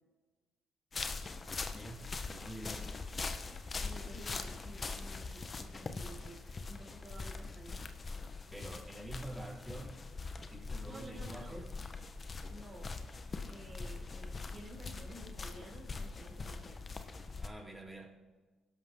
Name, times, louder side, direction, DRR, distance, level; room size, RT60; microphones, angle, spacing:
sound 1, 0.9-17.5, left 4 dB, 40° left, 1.4 m, -42 dB
voice 1, 1.7-2.9 8.5-10.0 10.4-11.7 17.4-18.2, right 1 dB, 10° right, 4.8 m, -47 dB
voice 2, 3.8-7.8 10.8-11.6 12.5-12.9 13.5-16.8, right 1 dB, 30° right, 5.4 m, -52 dB
25.5 x 12.0 x 4.0 m
hypercardioid pair, 55°, 0 cm